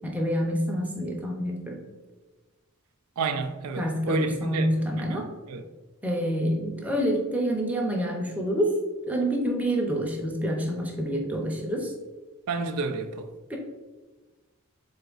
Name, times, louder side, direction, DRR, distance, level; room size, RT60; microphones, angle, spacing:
voice 1, 0.0-1.8 3.8-5.3 6.0-8.7 9.1-11.9 13.5-13.6, equal, 5° right, 0.6 m, -27 dB
voice 2, 3.2-5.6 12.5-13.3, right 3 dB, 80° right, 0.4 m, -31 dB
3.8 x 3.5 x 3.8 m
head